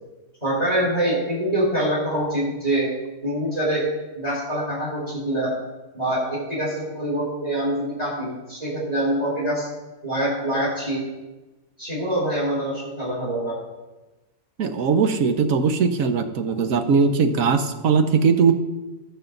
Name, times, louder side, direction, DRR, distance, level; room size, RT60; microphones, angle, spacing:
voice 1, 0.4-2.9 3.2-3.9 4.1-5.5 5.9-9.7 10.0-11.0 11.8-13.6, right 1 dB, 25° right, -7 dB, 4.3 m, -25 dB
voice 2, 14.6-18.5, right 5 dB, 75° right, 8 dB, 1.3 m, -20 dB
19.0 x 6.7 x 3.9 m, 1.1 s
omnidirectional pair, 1.5 m